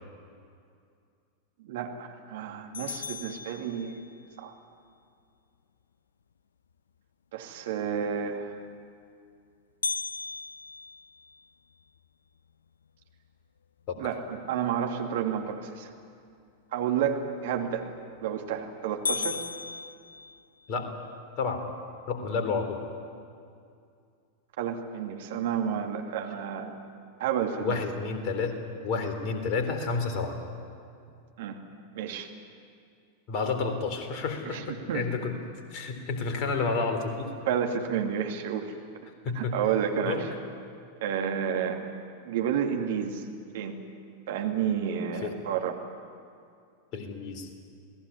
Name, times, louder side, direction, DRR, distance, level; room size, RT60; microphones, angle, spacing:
voice 1, 1.6-4.0 4.4-4.5 7.3-8.6 14.0-15.9 16.7-17.9 18.2-19.4 24.6-26.8 27.2-27.8 31.4-31.6 31.9-32.3 34.5-34.6 34.9-35.0 37.5-38.7 39.4-40.2 41.0-41.9 42.2-43.2 43.5-43.8 44.3-45.8, right 8 dB, 55° right, 3 dB, 2.6 m, -30 dB
sound 1, 2.7-4.3 9.8-12.0 12.5-12.6 13.1-13.2 13.8-14.2 17.8-18.2 18.6-18.7 19.1-20.8, left 5 dB, 70° left, 0.7 m, -36 dB
voice 2, 22.1-22.8 27.6-30.4 33.3-35.3 35.7-37.3 39.2-39.6 40.0-40.3 45.2-45.4 46.9-47.5, left 4 dB, 40° left, 5 dB, 3.9 m, -30 dB
27.5 x 19.5 x 10.0 m, 2.4 s
figure-of-eight pair, 90°, 0 cm